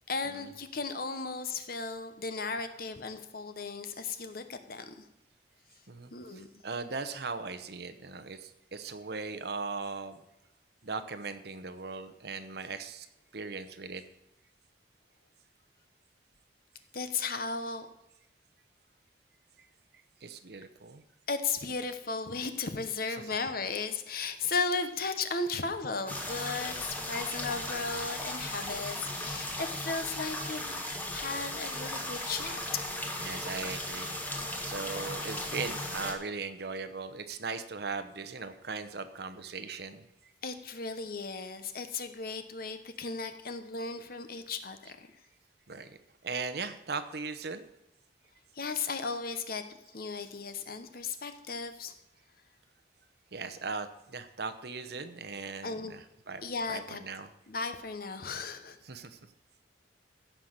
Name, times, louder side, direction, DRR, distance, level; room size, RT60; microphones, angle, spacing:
voice 1, 0.1-5.0 6.1-6.5 16.9-17.9 21.3-30.8 31.1-33.2 40.4-45.1 48.5-49.6 49.9-51.9 55.6-55.9 56.4-57.0 57.5-58.8, left 4 dB, 55° left, 9 dB, 1.1 m, -35 dB
voice 2, 5.9-10.2 10.8-13.1 13.3-14.0 20.2-21.0 23.1-23.4 33.2-34.1 34.6-40.0 45.7-46.0 46.2-47.6 53.3-57.3 58.8-59.2, right 4 dB, 60° right, 10 dB, 0.9 m, -39 dB
sound 1, 26.1-36.1, left 1 dB, 10° left, 1.4 m, -37 dB
15.5 x 5.9 x 6.6 m, 0.88 s
head